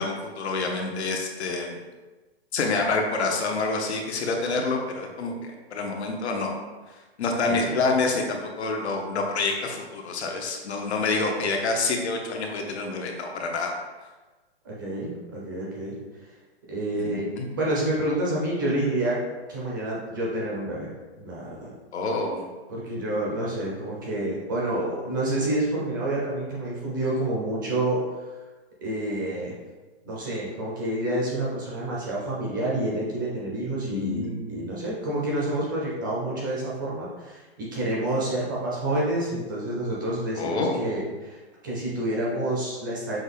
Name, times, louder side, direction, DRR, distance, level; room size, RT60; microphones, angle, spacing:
voice 1, 0.0-1.8 2.5-5.3 5.7-6.5 7.2-13.7 17.0-17.5 21.9-22.5 33.8-34.7 40.4-40.9, left 3 dB, 75° left, 1 dB, 0.9 m, -27 dB
voice 2, 14.6-16.0 16.7-19.2 19.5-20.9 21.2-21.7 22.7-28.0 28.8-29.5 30.0-43.2, right 1 dB, 20° right, -5 dB, 0.5 m, -28 dB
6.0 x 2.2 x 3.4 m, 1.2 s
hypercardioid pair, 170°, 33 cm